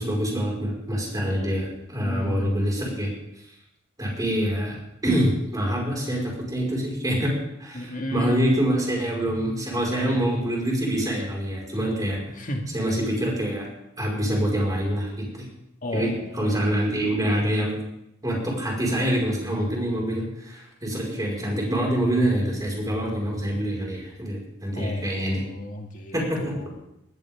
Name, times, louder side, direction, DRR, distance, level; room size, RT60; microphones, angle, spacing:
voice 1, 0.0-3.1 4.0-4.8 5.0-7.3 7.6-12.2 12.7-13.7 14.0-15.5 15.9-17.8 18.2-25.4 26.1-26.5, right 1 dB, 20° right, -2 dB, 5.4 m, -25 dB
voice 2, 2.0-2.6 7.7-8.6 9.7-10.2 12.3-12.7 15.8-16.5 24.8-26.8, left 1 dB, 40° left, 2 dB, 2.2 m, -33 dB
19.5 x 14.5 x 3.8 m, 0.81 s
head